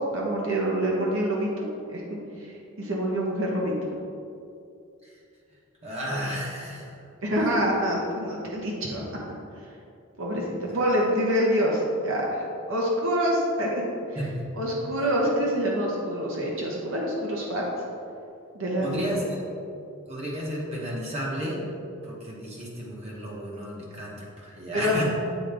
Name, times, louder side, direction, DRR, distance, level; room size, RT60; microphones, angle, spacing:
voice 1, 0.0-3.7 7.2-9.0 10.2-13.7 14.6-17.6 18.5-19.2 24.7-25.0, equal, 65° right, -3 dB, 0.9 m, -26 dB
voice 2, 5.8-6.9 7.3-7.5 10.4-10.8 14.1-14.6 14.9-15.0 18.8-19.4 20.1-21.6 22.0-25.1, equal, 30° right, -5 dB, 1.0 m, -33 dB
8.3 x 3.8 x 3.5 m, 2.6 s
head